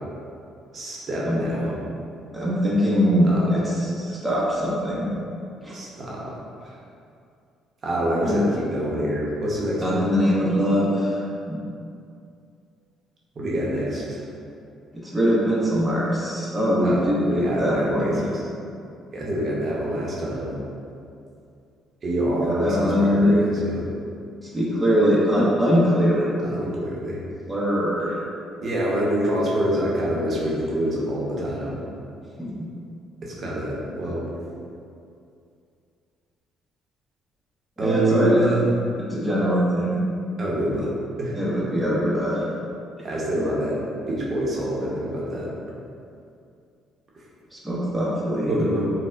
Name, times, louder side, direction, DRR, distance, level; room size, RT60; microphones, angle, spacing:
voice 1, 0.7-1.7 3.2-3.5 5.7-6.3 6.6-6.8 7.8-10.0 13.4-14.2 16.8-17.0 17.2-18.4 19.1-20.5 22.0-23.9 26.4-27.2 28.6-31.8 33.2-34.2 37.8-38.6 40.4-40.9 41.2-41.3 43.0-45.5 48.5-48.9, right 1 dB, 45° right, -5 dB, 0.7 m, -26 dB
voice 2, 2.3-5.1 5.6-5.7 8.2-8.4 9.8-11.2 11.5-11.6 14.9-18.2 22.4-23.4 24.5-26.3 27.5-28.2 32.4-32.7 37.8-38.4 39.1-40.0 41.3-42.4 47.5-48.7, equal, 5° right, -7 dB, 0.6 m, -22 dB
4.2 x 2.0 x 2.5 m, 2.5 s
cardioid pair, 105°, 0 cm